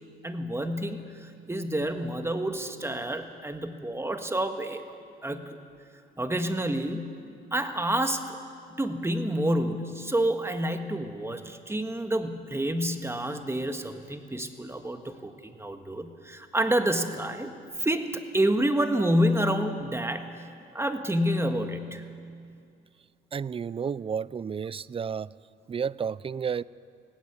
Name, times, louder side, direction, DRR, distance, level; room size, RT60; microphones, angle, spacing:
voice 1, 0.2-4.8 5.2-5.6 6.2-7.2 7.5-8.4 8.8-20.5 20.7-22.0, right 1 dB, 15° right, 7 dB, 1.6 m, -28 dB
voice 2, 23.3-25.3 25.7-26.6, right 6 dB, 30° right, 21 dB, 0.4 m, -31 dB
17.0 x 16.0 x 9.7 m, 2.3 s
cardioid pair, 90°, 20 cm